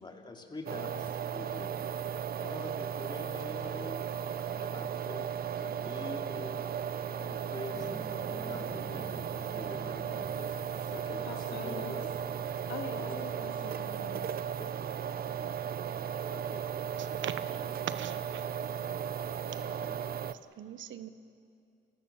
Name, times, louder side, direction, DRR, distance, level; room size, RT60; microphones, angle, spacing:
voice 1, 0.0-1.7 2.4-4.1 4.4-5.3 5.6-6.6 7.1-9.1 9.4-10.6 10.9-12.1 12.9-13.2 16.3-16.6 17.4-17.5 19.6-20.1, left 2 dB, 20° left, 3 dB, 2.9 m, -45 dB
sound 1, 0.7-20.3, right 8 dB, 50° right, 0.7 m, -36 dB
sound 2, 7.7-15.0, equal, ahead, 4.3 m, -50 dB
voice 2, 10.9-12.0 12.7-14.4, left 6 dB, 75° left, 4 dB, 2.5 m, -44 dB
voice 3, 18.0-18.4 20.6-21.1, right 10 dB, 75° right, 12 dB, 1.1 m, -41 dB
30.0 x 16.0 x 7.3 m, 2.4 s
cardioid pair, 90°, 20 cm